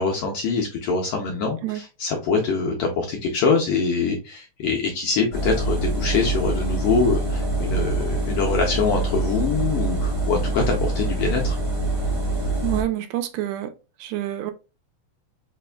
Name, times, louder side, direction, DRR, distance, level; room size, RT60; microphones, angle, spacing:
voice 1, 0.0-11.6, left 4 dB, 75° left, 1.4 m, -24 dB
Engine, 5.3-12.8, right 2 dB, 55° right, 0.3 m, -25 dB
voice 2, 12.6-13.7 14.0-14.5, right 14 dB, 80° right, 1.8 m, -27 dB
5.7 x 2.4 x 2.3 m
omnidirectional pair, 3.3 m